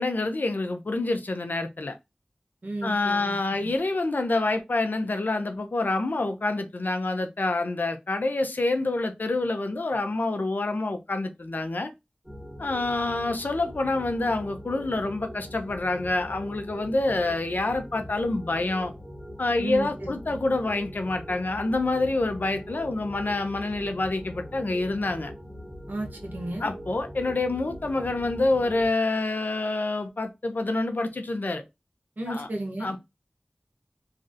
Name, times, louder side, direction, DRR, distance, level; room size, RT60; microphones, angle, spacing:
voice 1, 0.0-1.9 2.8-11.9 12.6-18.9 19.4-25.3 26.6-31.6 32.3-32.5 32.8-33.0, left 2 dB, 80° left, 0.6 m, -27 dB
voice 2, 2.6-3.7 19.6-20.1 25.9-26.7 32.2-32.9, right 1 dB, 75° right, 1.1 m, -34 dB
sound 1, 12.2-28.9, equal, 15° right, 1.5 m, -42 dB
3.2 x 2.6 x 2.6 m
wide cardioid pair, 40°, 3 cm